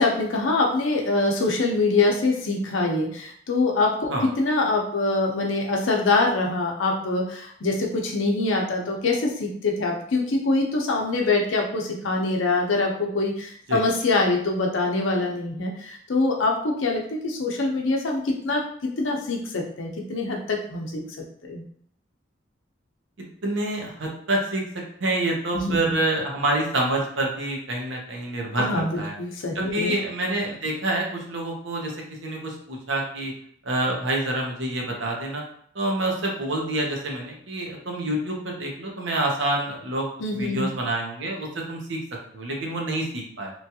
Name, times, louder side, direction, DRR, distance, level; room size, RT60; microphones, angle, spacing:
voice 1, 0.0-18.6 19.0-21.0 21.5-21.6 25.5-25.9 28.6-29.9 40.2-40.7, left 3 dB, 80° left, 0 dB, 0.6 m, -24 dB
voice 2, 23.4-29.1 29.5-31.9 32.2-33.3 33.6-35.4 35.7-40.1 40.3-42.0 42.3-43.5, right 1 dB, 65° right, 0 dB, 0.7 m, -27 dB
3.0 x 2.3 x 2.8 m, 0.63 s
head